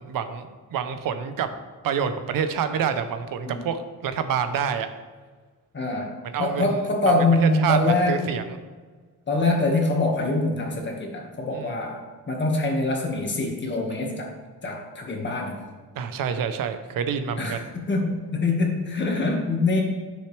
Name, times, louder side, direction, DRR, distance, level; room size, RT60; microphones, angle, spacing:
voice 1, 0.0-1.5 1.8-4.9 6.2-8.6 11.5-11.8 15.9-17.6, right 7 dB, 80° right, 9 dB, 0.8 m, -28 dB
voice 2, 5.7-6.1 6.4-8.3 9.3-12.0 12.3-14.3 14.6-15.6 17.4-19.8, left 2 dB, 35° left, 1 dB, 1.7 m, -24 dB
11.5 x 6.4 x 3.3 m, 1.4 s
cardioid pair, 130°, 33 cm